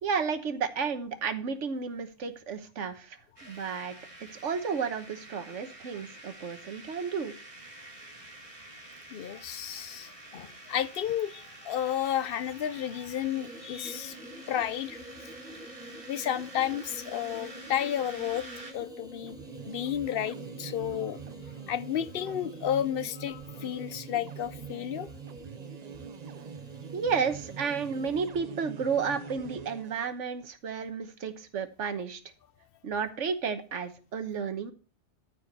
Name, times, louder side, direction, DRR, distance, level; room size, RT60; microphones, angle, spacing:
voice 1, 0.0-3.9 4.2-7.3 26.9-32.2 32.8-34.7, right 6 dB, 90° right, 1.4 m, -32 dB
sound 1, 3.4-18.7, right 2 dB, 30° right, 2.2 m, -48 dB
voice 2, 9.1-14.2 14.5-15.0 16.1-18.4 18.7-19.4 19.6-21.2 21.7-25.1, left 10 dB, 60° left, 0.8 m, -32 dB
sound 2, 13.2-28.3, equal, 5° right, 1.2 m, -48 dB
sound 3, 19.1-30.1, right 7 dB, 45° right, 0.6 m, -44 dB
13.5 x 4.7 x 5.4 m
omnidirectional pair, 1.2 m